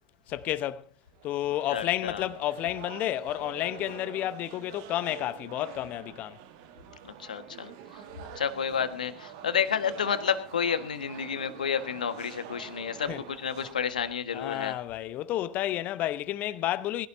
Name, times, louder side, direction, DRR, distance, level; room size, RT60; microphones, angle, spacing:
voice 1, 0.3-0.8 1.2-6.4 13.1-13.2 14.3-17.1, left 13 dB, 35° left, 0.9 m, -31 dB
sound 1, 1.1-13.7, right 10 dB, 50° right, 1.5 m, -46 dB
voice 2, 1.7-2.3 7.0-7.7 8.3-14.8, left 7 dB, 70° left, 1.6 m, -30 dB
20.5 x 16.5 x 2.8 m
figure-of-eight pair, 90°, 5 cm